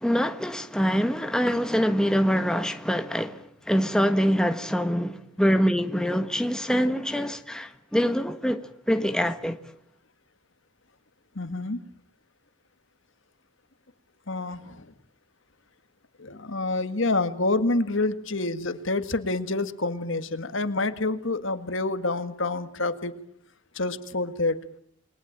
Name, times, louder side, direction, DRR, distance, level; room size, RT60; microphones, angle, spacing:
voice 1, 0.0-9.6, equal, 5° left, 1.3 m, -25 dB
voice 2, 11.4-11.8 14.3-14.9 16.2-23.1 23.8-24.6, left 2 dB, 65° left, 1.9 m, -27 dB
29.5 x 22.0 x 8.9 m
head